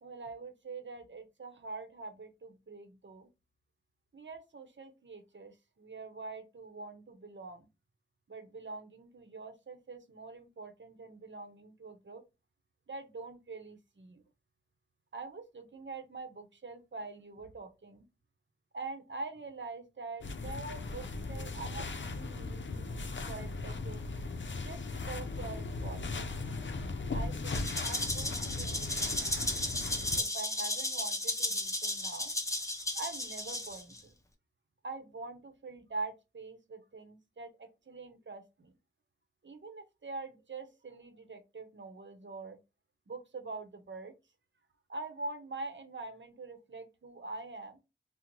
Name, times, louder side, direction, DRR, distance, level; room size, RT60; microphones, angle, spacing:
voice 1, 0.0-3.3 4.1-7.7 8.3-12.2 12.9-14.2 15.1-18.1 18.7-24.0 24.6-26.2 27.1-29.4 30.2-32.3 32.9-34.1 34.8-38.7 39.4-42.6 43.1-44.1 44.9-47.8, right 3 dB, 70° right, 7 dB, 0.7 m, -44 dB
sound 1, 20.2-30.2, left 3 dB, 70° left, 0.5 m, -38 dB
Rattle (instrument), 27.5-34.0, left 1 dB, 15° left, 0.6 m, -34 dB
2.9 x 2.0 x 3.8 m, 0.26 s
wide cardioid pair, 50°, 20 cm